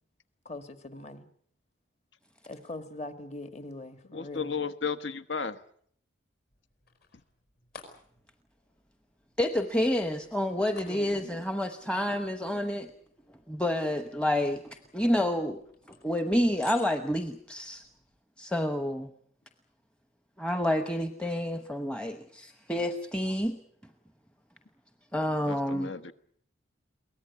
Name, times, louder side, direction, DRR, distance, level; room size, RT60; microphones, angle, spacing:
voice 1, 0.5-1.3 2.5-4.5 10.8-11.2, left 2 dB, 35° left, 1.7 m, -42 dB
voice 2, 4.1-5.6 25.5-26.1, left 5 dB, 70° left, 1.2 m, -34 dB
sound 1, 6.5-18.2, left 5 dB, 50° left, 5.2 m, -55 dB
voice 3, 9.4-12.9 13.5-15.6 16.0-17.8 18.4-19.1 20.4-23.6 25.1-25.9, left 1 dB, 5° left, 0.9 m, -29 dB
23.0 x 18.0 x 9.4 m
head